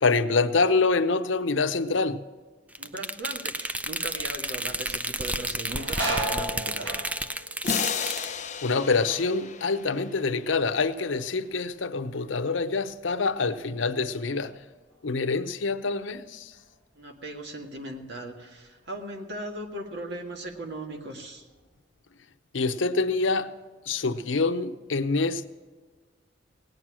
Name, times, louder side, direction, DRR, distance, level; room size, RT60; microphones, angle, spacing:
voice 1, 0.0-2.3 8.6-14.6 15.0-16.5 22.5-23.5 23.9-25.5, left 4 dB, 90° left, 0.8 m, -26 dB
sound 1, 2.7-8.3, right 1 dB, 10° right, 0.4 m, -32 dB
voice 2, 2.8-7.1 17.0-21.5, right 1 dB, 65° right, 1.8 m, -38 dB
sound 2, 5.7-10.8 11.1-11.7 12.2-15.1 15.4-15.5 16.5-16.7 17.2-18.3 18.7-18.9 19.5-20.1 20.4-21.6, right 1 dB, 90° right, 4.2 m, -38 dB
sound 3, 7.6-10.5, left 6 dB, 40° left, 0.8 m, -32 dB
18.0 x 9.2 x 6.2 m
head